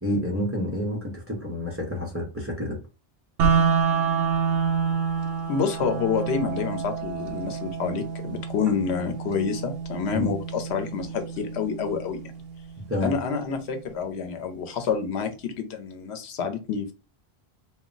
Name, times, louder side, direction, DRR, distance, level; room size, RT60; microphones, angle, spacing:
voice 1, 0.0-2.8 10.1-10.3 12.9-13.1, equal, 15° right, -2 dB, 0.5 m, -29 dB
sound 1, 3.4-13.4, right 6 dB, 70° right, 0.8 m, -28 dB
voice 2, 5.5-12.2 13.0-16.9, left 6 dB, 90° left, 7 dB, 0.9 m, -28 dB
2.2 x 2.0 x 3.7 m, 0.31 s
omnidirectional pair, 1.1 m